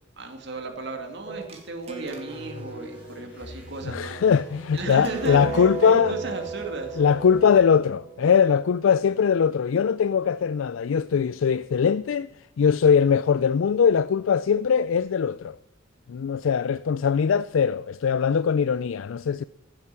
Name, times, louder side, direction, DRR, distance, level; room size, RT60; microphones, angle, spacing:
voice 1, 0.2-4.2 4.7-7.0, right 3 dB, 60° right, 2.2 m, -35 dB
sound 1, 1.3-9.0, right 5 dB, 30° right, 2.4 m, -37 dB
sound 2, 2.2-7.6, left 1 dB, 10° right, 4.8 m, -44 dB
voice 2, 3.8-6.1 7.0-15.6 16.1-19.4, left 7 dB, 75° left, 0.4 m, -21 dB
15.5 x 7.8 x 7.5 m
head